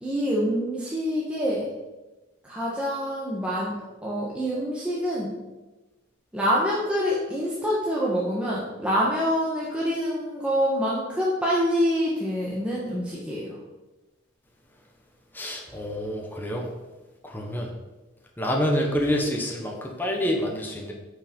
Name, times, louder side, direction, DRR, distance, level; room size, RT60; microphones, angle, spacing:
voice 1, 0.0-1.7 2.4-3.7 4.0-5.3 6.3-13.5, equal, 5° right, -6 dB, 1.3 m, -26 dB
voice 2, 15.3-16.6 17.2-17.7 18.4-20.9, equal, 10° left, 0 dB, 1.1 m, -27 dB
8.0 x 5.6 x 5.3 m, 1.1 s
head